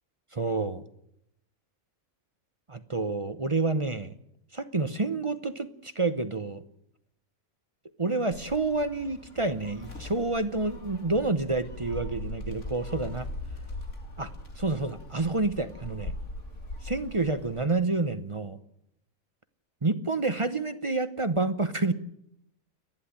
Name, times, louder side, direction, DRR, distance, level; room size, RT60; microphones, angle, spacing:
voice 1, 0.3-0.8 2.7-4.1 4.5-6.6 8.0-13.3 14.2-14.3 14.6-16.1 16.8-18.6 19.8-21.9, right 3 dB, 25° right, 11 dB, 0.8 m, -28 dB
Gull seagull, 8.3-17.7, left 2 dB, 60° left, 2.9 m, -40 dB
29.5 x 11.0 x 10.0 m, 0.77 s
omnidirectional pair, 1.4 m